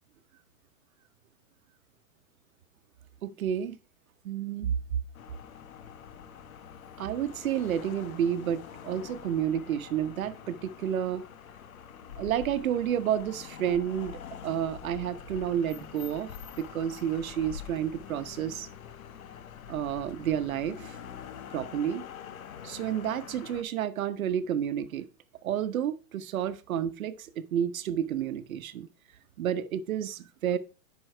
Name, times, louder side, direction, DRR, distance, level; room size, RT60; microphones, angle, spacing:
voice 1, 3.2-3.8 4.2-4.7 7.0-11.2 12.2-16.3 16.6-18.7 19.7-21.0 21.5-22.0 22.6-25.1 25.4-28.9 29.4-30.6, right 9 dB, 85° right, 0.9 m, -30 dB
sound 1, 5.1-23.6, left 8 dB, 85° left, 1.0 m, -45 dB
8.0 x 5.5 x 4.4 m
hypercardioid pair, 145°, 41 cm